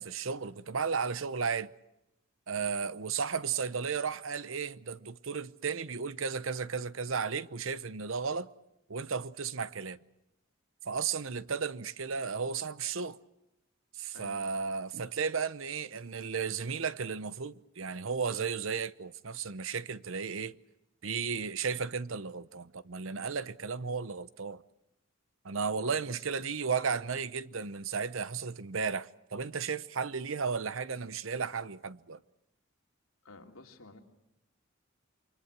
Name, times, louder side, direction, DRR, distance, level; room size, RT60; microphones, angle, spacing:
voice 1, 0.0-1.7 2.5-8.5 8.9-10.0 10.8-13.2 13.9-20.6 21.0-24.6 25.4-32.2, right 5 dB, 70° right, 0.9 m, -34 dB
voice 2, 2.5-2.9 14.1-14.5 25.8-26.4 33.2-34.0, left 2 dB, 90° left, 2.8 m, -52 dB
28.5 x 24.5 x 6.1 m
head